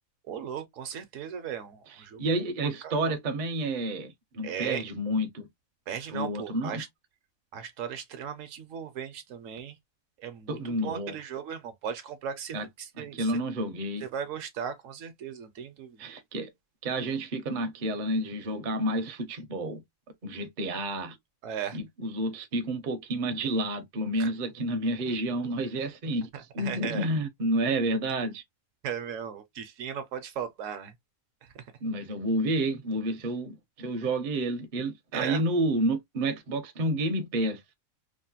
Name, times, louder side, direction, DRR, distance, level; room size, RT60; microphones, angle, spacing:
voice 1, 0.3-2.2 2.8-3.0 4.4-4.8 5.9-6.9 7.5-9.7 10.2-13.3 14.0-16.0 21.4-21.8 24.2-24.3 26.6-27.1 28.8-30.9 35.1-35.4, right 8 dB, 70° right, 0.9 m, -37 dB
voice 2, 1.9-5.5 6.1-6.8 10.5-11.2 12.5-12.7 13.0-14.0 16.0-16.5 16.8-19.8 20.2-21.2 21.7-26.3 26.5-28.4 31.8-37.6, right 1 dB, 50° right, 0.6 m, -30 dB
3.1 x 2.1 x 2.6 m
omnidirectional pair, 1.4 m